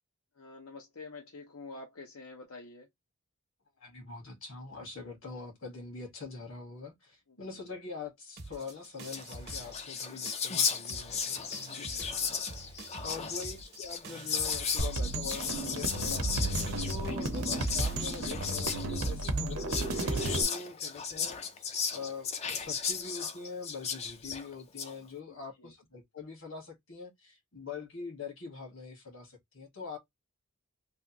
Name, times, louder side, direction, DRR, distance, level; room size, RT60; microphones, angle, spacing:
voice 1, 0.4-2.9 7.3-7.6 11.6-12.4 13.0-13.3 17.2-17.4 25.3-25.7, left 3 dB, 90° left, 0.8 m, -49 dB
voice 2, 3.8-16.4 16.8-21.4 21.9-30.0, left 4 dB, 65° left, 1.6 m, -44 dB
sound 1, 8.4-10.0 10.3-18.5, right 3 dB, 50° right, 0.7 m, -47 dB
Whispering, 8.7-8.8 9.0-24.9, left 6 dB, 30° left, 0.4 m, -35 dB
sound 2, 14.8-20.4, right 2 dB, 85° right, 0.8 m, -33 dB
3.3 x 2.5 x 2.8 m
head